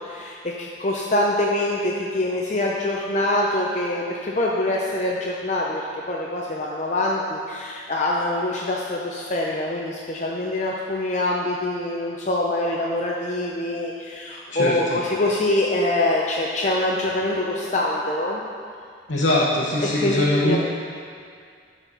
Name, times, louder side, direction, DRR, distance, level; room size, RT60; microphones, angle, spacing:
voice 1, 0.0-18.4 19.8-20.6, left 1 dB, 40° left, -3 dB, 0.6 m, -24 dB
voice 2, 14.5-15.0 19.1-20.6, left 1 dB, 85° left, -6 dB, 1.0 m, -22 dB
12.0 x 4.2 x 5.4 m, 2.2 s
head